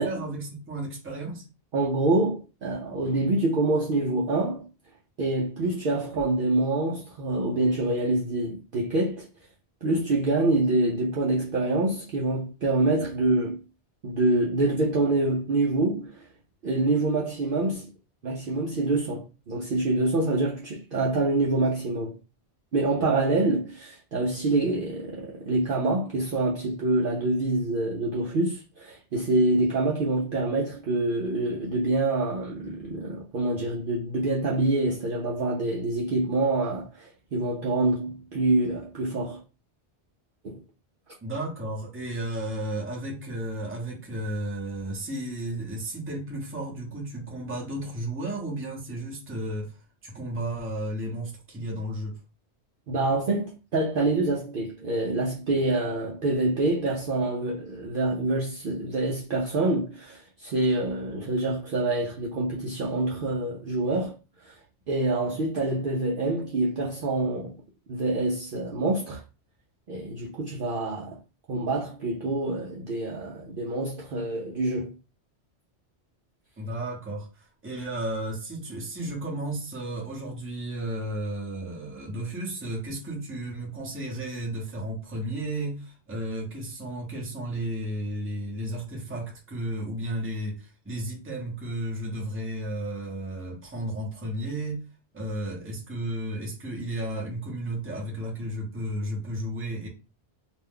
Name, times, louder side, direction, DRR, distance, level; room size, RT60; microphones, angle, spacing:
voice 1, 0.0-1.4 41.2-49.8 50.0-52.2 76.6-94.8 95.1-99.9, right 1 dB, 10° right, 0.8 m, -33 dB
voice 2, 1.7-4.7 5.2-9.3 9.8-13.6 14.0-16.2 16.6-17.9 18.2-22.2 22.7-39.4 40.4-40.6 52.9-64.2 64.4-64.6 64.9-67.5 67.9-69.2 69.9-71.2 71.5-74.9, right 2 dB, 55° right, 0.7 m, -26 dB
2.5 x 2.2 x 3.4 m
omnidirectional pair, 1.2 m